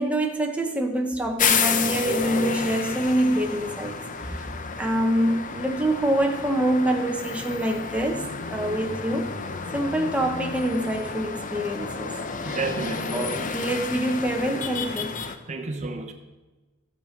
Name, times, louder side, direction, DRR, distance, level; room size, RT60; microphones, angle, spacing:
voice 1, 0.0-4.5 4.8-9.3 9.7-12.7 13.1-15.2 15.8-15.9, right 1 dB, 5° right, 0.9 m, -26 dB
sound 1, 1.4-15.4, left 5 dB, 40° left, 0.8 m, -30 dB
voice 2, 12.4-13.2 15.5-16.1, right 3 dB, 35° right, 0.9 m, -31 dB
15.0 x 7.4 x 5.1 m
head